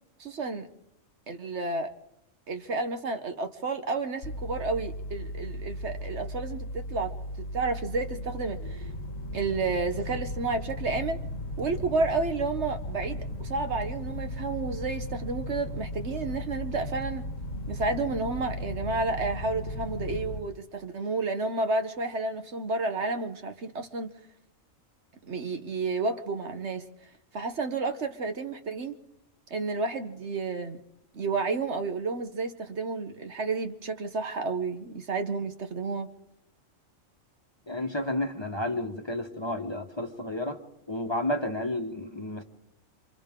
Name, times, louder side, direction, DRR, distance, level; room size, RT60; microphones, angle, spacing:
voice 1, 0.2-0.7 1.3-1.9 2.5-7.1 7.5-8.9 9.3-11.2 11.6-17.3 17.7-24.2 25.2-26.9 27.3-29.0 29.5-30.8 31.1-36.1, right 3 dB, 60° right, 1.3 m, -31 dB
sound 1, 4.2-20.4, left 1 dB, 80° left, 2.0 m, -36 dB
voice 2, 37.7-40.6 40.9-42.4, left 1 dB, 20° left, 1.3 m, -31 dB
28.5 x 26.0 x 3.8 m
omnidirectional pair, 1.4 m